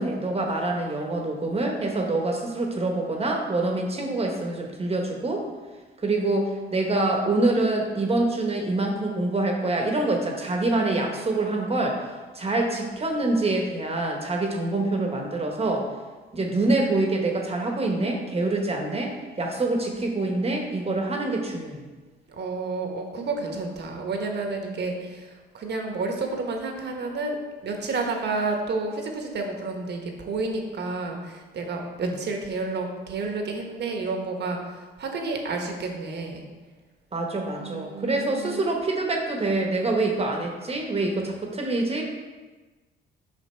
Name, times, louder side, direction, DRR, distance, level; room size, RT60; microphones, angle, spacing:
voice 1, 0.0-5.4 6.0-12.0 12.3-15.9 16.3-21.8 32.0-32.1 37.1-42.0, right 2 dB, 30° right, 1 dB, 1.1 m, -25 dB
voice 2, 22.3-36.4 37.5-38.6, right 3 dB, 60° right, 3 dB, 1.1 m, -30 dB
5.7 x 5.3 x 4.4 m, 1.3 s
cardioid pair, 90°, 20 cm